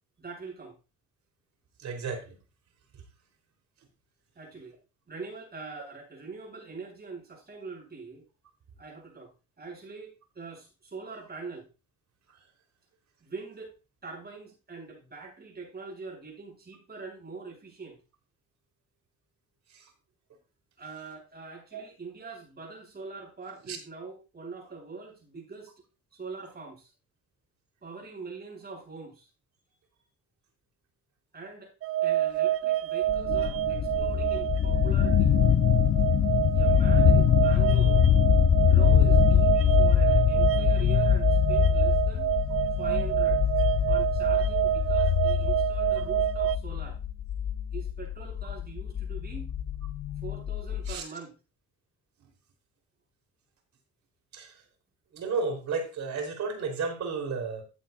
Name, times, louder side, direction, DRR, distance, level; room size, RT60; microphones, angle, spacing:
voice 1, 0.2-0.8 4.4-4.8 5.1-8.2 8.8-9.3 9.6-11.7 13.2-18.0 20.8-25.7 26.1-26.9 27.8-29.3 31.3-31.7 32.0-35.3 36.5-38.1 38.6-42.3 42.8-43.4 43.9-47.0 47.7-49.5 50.2-51.3, right 4 dB, 30° right, -1 dB, 7.1 m, -43 dB
voice 2, 1.8-2.4 19.7-19.8 21.7-21.8 23.7-23.8 50.9-51.0 54.3-54.5 55.1-57.6, right 4 dB, 65° right, 4 dB, 4.1 m, -32 dB
sound 1, 31.8-46.6, right 13 dB, 50° right, 0.5 m, -27 dB
sound 2, 33.1-50.9, left 9 dB, 50° left, 0.9 m, -24 dB
14.0 x 8.9 x 2.6 m, 0.30 s
cardioid pair, 90°, 30 cm